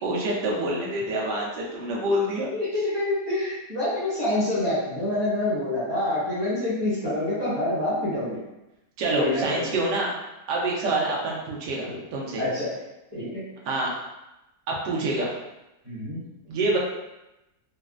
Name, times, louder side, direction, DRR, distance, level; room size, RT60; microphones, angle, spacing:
voice 1, 0.0-2.5 9.0-10.1 10.5-12.4 13.7-13.9 14.7-15.3 16.5-16.8, right 2 dB, 80° right, -3 dB, 1.3 m, -26 dB
voice 2, 2.5-8.4 9.1-9.7 11.0-11.1 11.8-12.0 12.4-12.7 13.1-13.4 15.9-16.2, left 1 dB, 20° right, -11 dB, 0.9 m, -27 dB
4.1 x 2.0 x 2.4 m, 0.95 s
omnidirectional pair, 1.8 m